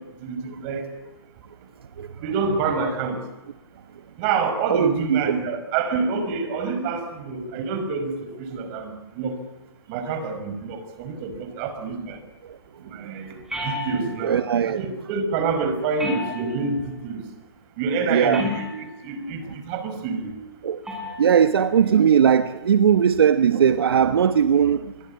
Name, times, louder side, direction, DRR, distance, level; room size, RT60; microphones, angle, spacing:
voice 1, 0.2-0.9 2.2-3.2 4.2-9.4 9.9-12.2 12.8-13.3 13.6-17.2 17.8-18.7 19.0-20.3, right 4 dB, 35° right, 8 dB, 5.4 m, -27 dB
voice 2, 4.7-5.2 14.2-14.8 18.1-18.4 20.6-20.8 21.2-24.9, right 8 dB, 70° right, 11 dB, 1.3 m, -19 dB
sound 1, 13.5-14.3 16.0-16.8 18.3-19.0 20.9-21.3, left 2 dB, 5° right, 7.8 m, -32 dB
26.0 x 22.5 x 8.7 m, 1.0 s
hypercardioid pair, 145°, 13 cm